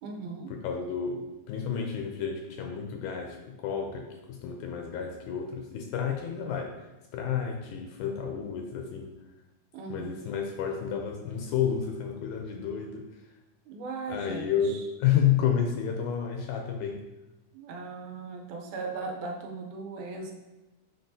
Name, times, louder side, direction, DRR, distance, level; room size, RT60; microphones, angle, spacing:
voice 1, 0.0-0.5 9.7-10.2 13.7-14.9 17.5-20.3, right 3 dB, 75° right, 2 dB, 2.1 m, -38 dB
voice 2, 0.6-6.9 7.1-9.1 9.9-13.1 14.1-17.0, left 8 dB, 80° left, 3 dB, 2.0 m, -30 dB
7.7 x 4.6 x 2.7 m, 1.0 s
omnidirectional pair, 3.7 m